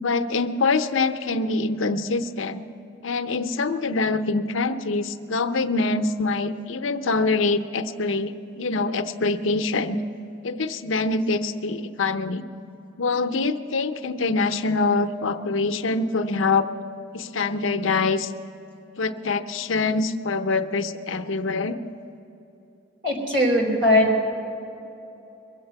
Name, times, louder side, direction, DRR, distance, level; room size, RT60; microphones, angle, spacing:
voice 1, 0.0-2.6 3.0-10.0 10.4-12.5 13.0-16.7 17.1-18.3 19.0-21.8, left 3 dB, 80° left, 8 dB, 0.7 m, -24 dB
voice 2, 23.0-24.3, left 1 dB, 60° right, -1 dB, 4.0 m, -21 dB
22.5 x 8.1 x 6.9 m, 2.9 s
head